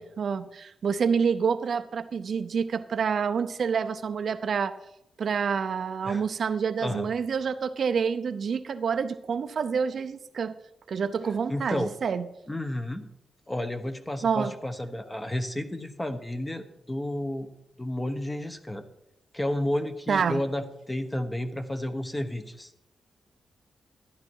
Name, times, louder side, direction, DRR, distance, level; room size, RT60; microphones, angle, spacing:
voice 1, 0.0-4.7 5.2-10.5 10.9-12.3 14.2-14.5 20.1-20.4, right 6 dB, 60° right, 10 dB, 0.6 m, -27 dB
voice 2, 11.5-11.9 12.5-13.1 13.5-17.5 17.8-18.8 19.3-22.7, left 1 dB, 15° left, 8 dB, 1.0 m, -31 dB
13.0 x 11.0 x 4.7 m, 0.82 s
wide cardioid pair, 115°, 0 cm